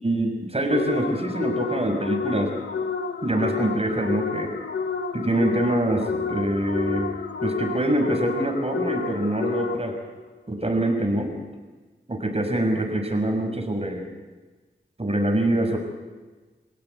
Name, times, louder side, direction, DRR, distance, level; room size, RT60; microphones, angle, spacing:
voice 1, 0.0-2.5 3.2-4.5 5.1-7.1 7.4-9.9 10.5-11.3 12.1-14.1 15.0-15.8, right 1 dB, 35° right, 3 dB, 6.5 m, -24 dB
sound 1, 0.7-10.1, left 5 dB, 85° left, 1.7 m, -30 dB
28.0 x 17.0 x 9.6 m, 1.3 s
wide cardioid pair, 60°, 18 cm